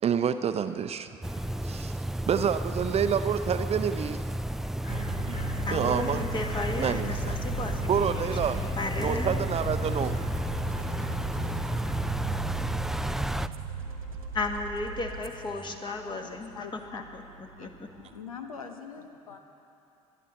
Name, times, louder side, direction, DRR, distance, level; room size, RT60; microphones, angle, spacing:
voice 1, 0.0-1.1 1.6-2.0 2.3-4.2 4.9-5.5 5.7-6.3 6.8-7.4 7.9-8.6 9.0-10.2, right 7 dB, 35° right, 10 dB, 0.6 m, -28 dB
sound 1, 1.2-13.5, right 1 dB, ahead, 0.4 m, -32 dB
Crow, 4.4-18.2, left 1 dB, 45° left, 3.3 m, -52 dB
sound 2, 4.9-18.3, right 2 dB, 90° right, 1.3 m, -38 dB
voice 2, 5.7-9.4 14.3-16.7 16.9-17.2 17.6-17.7, left 2 dB, 25° left, 3 dB, 1.8 m, -35 dB
voice 3, 16.5-17.0 17.6-17.7 18.0-19.4, left 6 dB, 85° left, 6 dB, 0.9 m, -42 dB
21.0 x 12.0 x 4.2 m, 2.7 s
hypercardioid pair, 65°, 17 cm